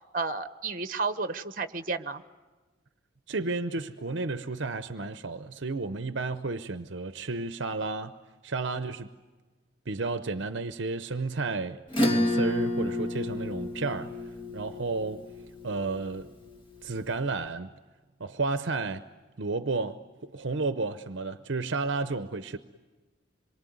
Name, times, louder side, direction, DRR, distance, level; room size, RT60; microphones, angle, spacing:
voice 1, 0.1-2.2, right 4 dB, 45° right, 1.1 m, -32 dB
voice 2, 3.3-8.1 8.4-9.1 9.9-14.1 14.5-15.3 15.6-16.3 16.8-17.7 18.2-19.0 19.4-22.6, right 3 dB, 60° right, 0.8 m, -32 dB
Acoustic guitar / Strum, 11.9-16.8, left 1 dB, 25° left, 2.6 m, -30 dB
26.5 x 23.0 x 9.4 m
head